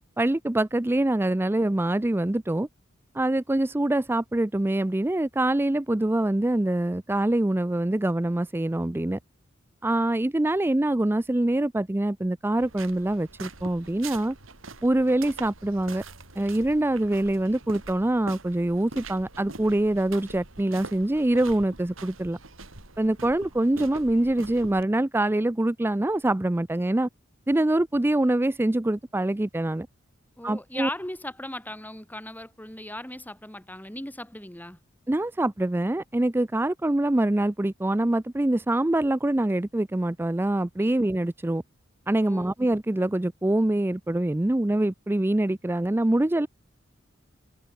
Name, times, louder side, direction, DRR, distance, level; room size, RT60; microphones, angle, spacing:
voice 1, 0.2-2.7 3.1-9.2 9.8-14.4 14.8-16.0 16.4-22.4 23.0-27.1 27.5-29.9 30.4-30.9 35.1-41.6 42.1-46.5, right 1 dB, 10° right, 0.4 m, -24 dB
sound 1, 12.6-24.8, right 3 dB, 85° right, 4.2 m, -44 dB
voice 2, 30.4-34.8 40.8-40.9 42.2-42.5, left 1 dB, 10° left, 4.1 m, -37 dB
head